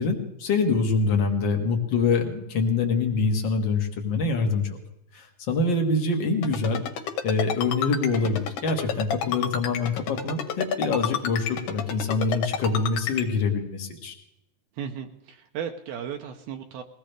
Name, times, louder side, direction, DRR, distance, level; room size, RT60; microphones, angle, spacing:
voice 1, 0.0-4.8 5.1-6.8 7.2-14.1, left 4 dB, 50° left, 3 dB, 1.4 m, -25 dB
Ringtone, 6.4-13.2, left 6 dB, 80° left, 3.7 m, -29 dB
voice 2, 14.8-16.8, right 8 dB, 80° right, 4 dB, 2.5 m, -35 dB
21.0 x 17.5 x 3.4 m, 0.84 s
omnidirectional pair, 4.7 m